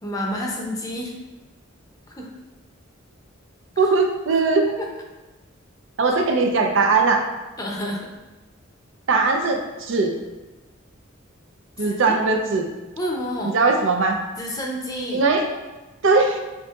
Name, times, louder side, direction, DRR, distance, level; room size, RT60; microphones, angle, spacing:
voice 1, 0.0-1.2 2.2-2.3 3.8-3.9 4.7-4.9 6.1-6.2 7.6-8.1 11.8-12.2 13.0-13.5 14.4-15.2, equal, 20° left, -1 dB, 0.6 m, -29 dB
voice 2, 3.8-4.6 6.0-7.2 9.1-10.1 11.8-12.6 13.5-14.2 15.1-15.4 16.0-16.4, right 3 dB, 70° right, 3 dB, 0.5 m, -19 dB
7.2 x 2.6 x 2.3 m, 1.2 s
head